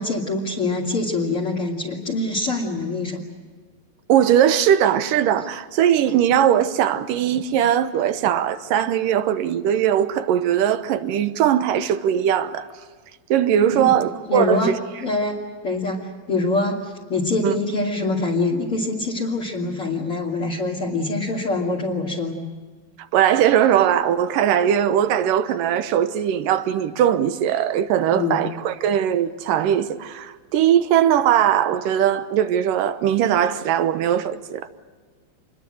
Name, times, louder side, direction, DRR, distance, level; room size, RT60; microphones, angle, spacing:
voice 1, 0.0-3.2 13.7-13.9 14.3-14.7 15.0-15.4 15.6-22.4 28.1-28.4, left 2 dB, 40° left, 3.3 m, -24 dB
voice 2, 4.1-12.7 13.3-14.7 17.4-17.5 23.1-34.7, right 10 dB, 70° right, 2.5 m, -20 dB
27.5 x 21.5 x 7.9 m
omnidirectional pair, 4.2 m